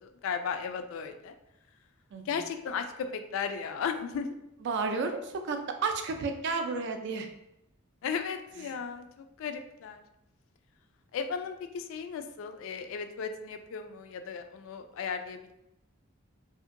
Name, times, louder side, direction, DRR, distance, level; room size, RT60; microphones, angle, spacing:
voice 1, 0.0-1.3 2.3-4.3 8.0-10.0 11.1-15.5, left 6 dB, 70° left, 9 dB, 0.3 m, -35 dB
voice 2, 2.1-2.5 4.6-7.3 8.7-8.8, right 4 dB, 60° right, 6 dB, 0.4 m, -32 dB
2.7 x 2.5 x 2.5 m, 0.84 s
head